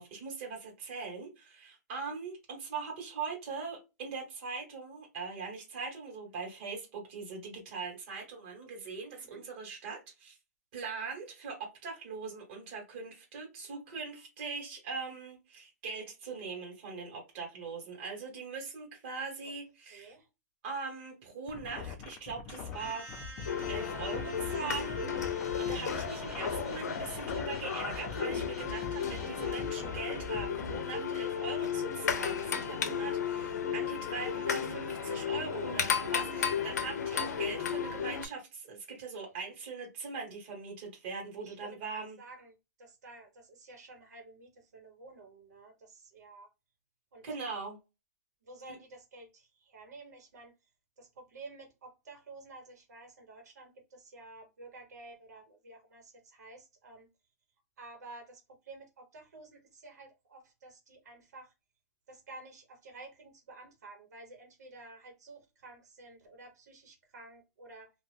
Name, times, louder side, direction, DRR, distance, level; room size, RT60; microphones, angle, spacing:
voice 1, 0.0-10.4 10.7-20.1 20.6-23.1 23.7-42.2 47.2-47.8, right 4 dB, 35° right, 1.3 m, -41 dB
voice 2, 19.9-20.3 32.8-33.2 41.4-41.6 41.9-46.5 47.1-47.3 48.4-50.5 51.0-57.1 57.8-61.5 62.1-67.9, right 2 dB, 80° right, 1.2 m, -52 dB
sound 1, 21.5-30.8, left 6 dB, 25° left, 0.4 m, -43 dB
sound 2, 22.7-29.6, equal, ahead, 0.9 m, -50 dB
sound 3, 23.5-38.3, left 7 dB, 80° left, 0.6 m, -34 dB
2.5 x 2.4 x 3.3 m
hypercardioid pair, 160°, 9 cm